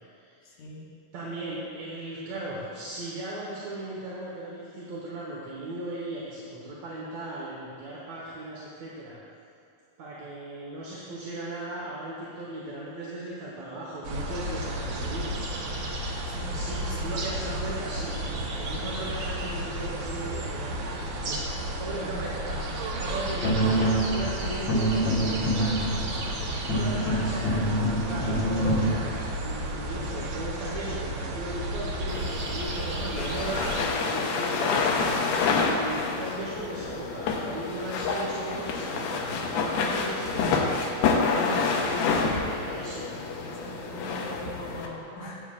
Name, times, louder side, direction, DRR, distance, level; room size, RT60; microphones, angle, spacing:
voice 1, 0.4-0.9 16.3-17.1 22.0-22.2 41.2-41.7 43.4-45.4, left 1 dB, 55° left, -5 dB, 2.5 m, -41 dB
voice 2, 1.1-9.2 10.0-15.4 16.4-18.2 18.6-20.9 21.3-21.4 21.8-22.6 23.0-34.8 35.6-40.7 41.1-43.1, right 1 dB, 60° right, -6 dB, 2.1 m, -37 dB
sound 1, 14.0-33.8, right 1 dB, 80° right, 1.3 m, -32 dB
sound 2, 23.4-28.9, right 1 dB, 40° left, 1.9 m, -26 dB
sound 3, 32.1-44.9, left 4 dB, 90° left, 2.7 m, -28 dB
16.5 x 8.1 x 2.4 m, 2.7 s
omnidirectional pair, 4.1 m